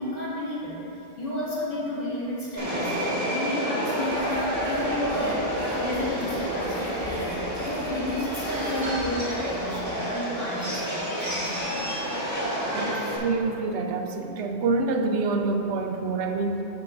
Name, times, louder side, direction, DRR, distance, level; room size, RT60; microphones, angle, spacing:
voice 1, 0.0-11.7, left 1 dB, 50° left, -8 dB, 2.1 m, -32 dB
Subway metro underground, 2.6-13.2, equal, 15° right, 1.8 m, -29 dB
sound 1, 4.0-9.9, equal, 85° left, 1.7 m, -44 dB
voice 2, 12.7-16.6, right 3 dB, 75° right, 5 dB, 0.8 m, -27 dB
12.5 x 6.8 x 2.5 m, 2.9 s
omnidirectional pair, 1.2 m